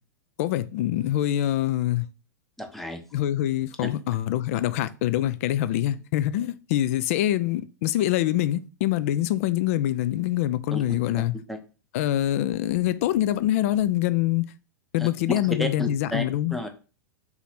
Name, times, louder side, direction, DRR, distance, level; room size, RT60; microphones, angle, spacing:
voice 1, 0.4-2.1 3.1-11.3 11.9-14.5 14.9-16.6, left 13 dB, 45° left, 0.4 m, -25 dB
voice 2, 2.6-3.0 3.8-3.9 10.7-10.8 11.5-11.6 15.0-16.2 16.5-16.7, left 1 dB, ahead, 0.7 m, -31 dB
3.9 x 2.8 x 4.3 m
figure-of-eight pair, 95°, 10 cm